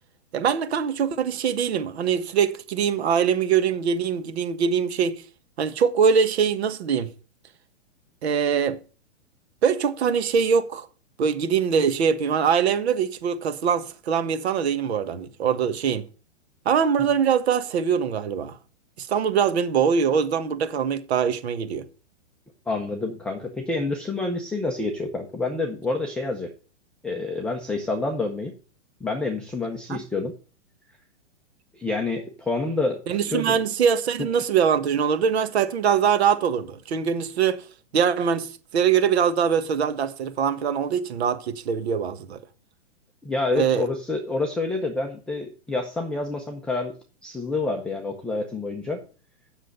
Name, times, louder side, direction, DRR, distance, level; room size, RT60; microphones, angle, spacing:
voice 1, 0.3-5.2 5.6-7.1 8.2-8.8 9.6-10.9 11.2-16.1 16.6-18.6 19.0-21.8 29.9-30.0 33.1-37.6 37.9-42.4 43.5-43.8, right 7 dB, 60° right, 1.5 m, -23 dB
voice 2, 22.7-26.5 27.0-28.5 29.0-30.3 31.7-33.6 43.2-46.9 47.2-49.0, left 3 dB, 5° left, 0.6 m, -28 dB
7.6 x 6.5 x 6.7 m
hypercardioid pair, 150°, 36 cm